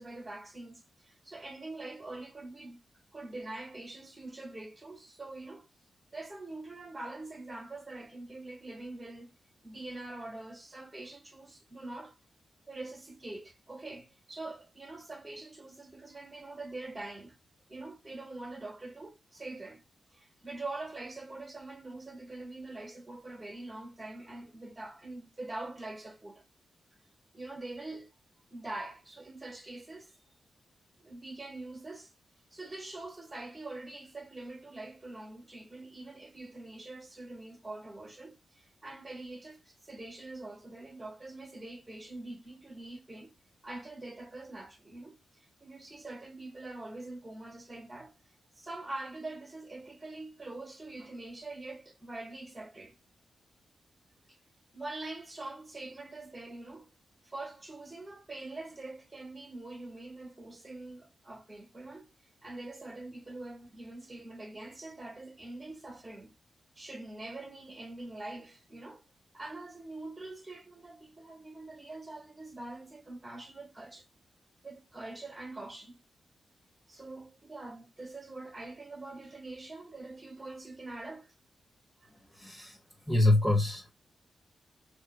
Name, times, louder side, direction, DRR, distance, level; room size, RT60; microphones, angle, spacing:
voice 1, 0.0-2.8 3.1-5.7 6.1-9.3 9.6-12.2 12.7-17.3 17.7-19.8 20.1-26.4 27.3-28.1 28.5-30.1 31.0-32.1 32.5-43.3 43.6-45.2 45.6-48.1 48.6-52.9 54.3-54.4 54.7-56.9 57.3-62.1 62.4-66.3 66.8-69.0 69.3-74.1 74.6-76.0 76.9-81.3 82.0-82.1, right 2 dB, 25° right, 2.1 m, -44 dB
voice 2, 82.4-82.8 83.1-83.9, left 2 dB, 5° left, 1.7 m, -25 dB
3.3 x 3.2 x 4.6 m
cardioid pair, 55°, 0 cm